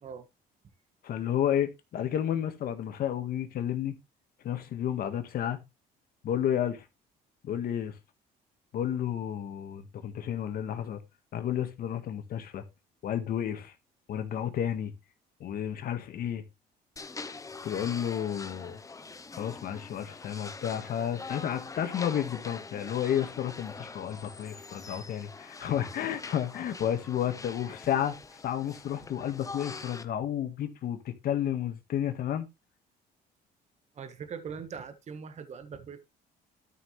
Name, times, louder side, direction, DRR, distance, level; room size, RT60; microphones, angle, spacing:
voice 1, 1.0-4.0 4.4-5.6 6.2-6.8 7.4-7.9 8.7-11.0 11.3-12.6 13.0-13.7 14.1-14.9 15.4-16.4 17.6-18.8 19.3-28.1 28.4-32.5, left 10 dB, 60° left, 1.7 m, -31 dB
sound 1, 17.0-30.0, left 4 dB, 20° left, 0.9 m, -44 dB
voice 2, 33.9-36.0, right 6 dB, 40° right, 1.5 m, -41 dB
12.5 x 5.7 x 3.4 m
cardioid pair, 110°, 17 cm